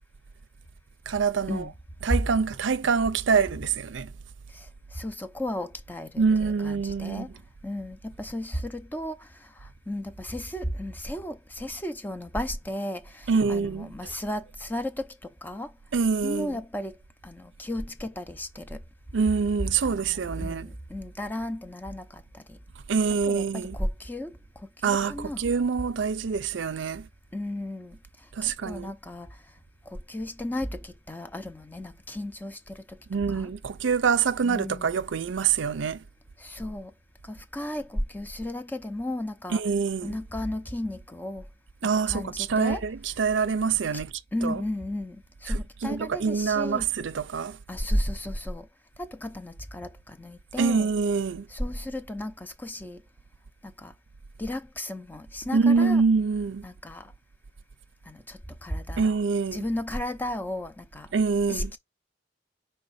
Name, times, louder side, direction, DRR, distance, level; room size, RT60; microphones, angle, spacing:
voice 1, 1.1-1.7 2.0-4.1 6.2-7.3 13.3-13.9 15.9-16.6 19.1-20.7 22.9-23.8 24.8-27.1 28.4-28.9 33.1-36.0 39.5-40.2 41.8-44.6 45.5-47.6 50.6-51.5 55.5-56.7 59.0-59.6 61.1-61.7, right 5 dB, 70° right, 0.5 m, -25 dB
voice 2, 4.9-7.3 7.6-9.3 9.9-15.7 16.2-16.9 17.2-18.8 19.8-22.2 22.5-22.6 23.3-24.3 24.8-25.4 27.3-28.0 28.4-29.3 29.9-33.0 33.3-33.5 34.4-35.0 36.4-36.9 37.3-39.6 40.0-41.4 42.1-42.8 44.3-46.9 47.7-48.7 49.0-50.9 51.5-53.0 53.6-53.9 54.4-56.0 56.6-57.1 58.1-59.1 59.5-61.1 61.5-61.8, left 1 dB, 10° left, 0.6 m, -34 dB
5.2 x 3.3 x 5.5 m
head